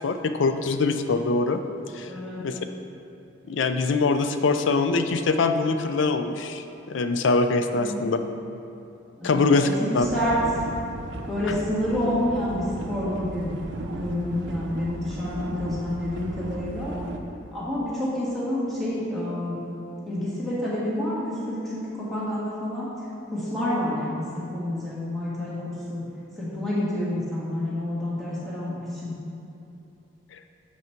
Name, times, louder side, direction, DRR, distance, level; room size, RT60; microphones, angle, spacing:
voice 1, 0.0-1.6 1.9-2.1 2.4-2.6 3.5-8.2 9.2-9.7 9.9-10.1, left 3 dB, 75° left, 8 dB, 0.4 m, -23 dB
voice 2, 2.1-2.4 7.7-8.3 9.2-10.3 11.3-13.5 13.9-17.0 17.5-19.6 20.1-22.9 23.2-26.0 26.4-29.1, left 1 dB, ahead, -10 dB, 1.7 m, -29 dB
sound 1, 10.0-17.2, right 2 dB, 70° right, 0.6 m, -36 dB
8.1 x 4.7 x 4.5 m, 2.8 s
head